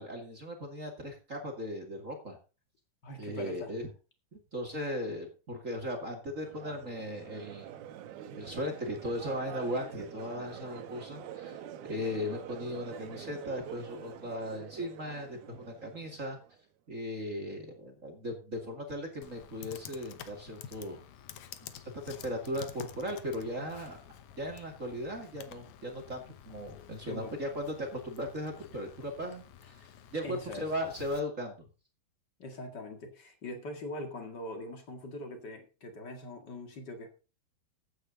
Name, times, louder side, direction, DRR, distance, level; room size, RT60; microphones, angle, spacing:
voice 1, 0.0-2.4 3.2-3.9 4.3-7.7 8.4-11.6 11.8-16.4 16.9-21.0 21.7-24.0 24.4-31.6, equal, 25° right, 1.9 m, -37 dB
voice 2, 3.0-3.7 27.1-27.3 30.2-30.7 32.4-37.1, left 1 dB, 35° left, 2.0 m, -42 dB
Crowd, 6.4-16.6, right 10 dB, 90° right, 2.9 m, -46 dB
Computer keyboard, 19.2-31.2, left 10 dB, 70° left, 2.0 m, -50 dB
15.0 x 9.2 x 4.0 m
omnidirectional pair, 4.3 m